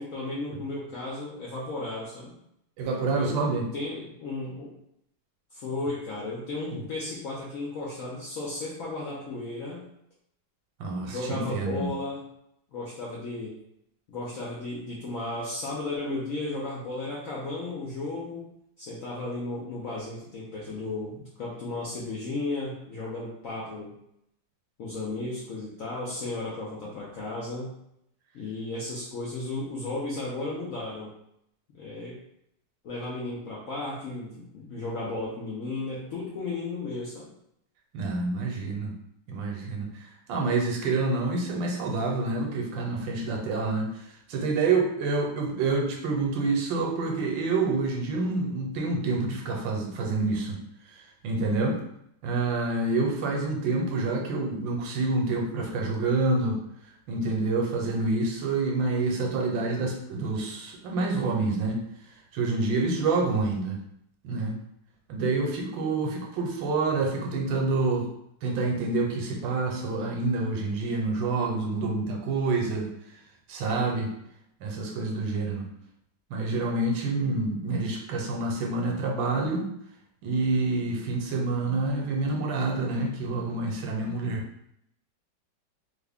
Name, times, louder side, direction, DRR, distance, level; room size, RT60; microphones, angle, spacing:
voice 1, 0.0-2.4 3.1-4.7 5.5-9.9 11.0-12.3 12.7-13.6 14.1-18.5 18.8-23.9 24.8-27.8 28.3-31.1 31.8-32.2 32.8-37.3, left 2 dB, 75° left, -5 dB, 0.7 m, -34 dB
voice 2, 2.8-3.6 10.8-11.8 37.9-38.9 39.3-50.6 50.9-51.8 52.2-56.6 57.1-61.8 62.3-63.8 64.2-64.6 65.1-68.1 68.4-73.2 73.5-74.1 74.6-75.7 76.3-79.7 80.2-84.4, right 3 dB, 80° right, 1 dB, 1.4 m, -27 dB
3.5 x 2.1 x 3.4 m, 0.76 s
omnidirectional pair, 2.1 m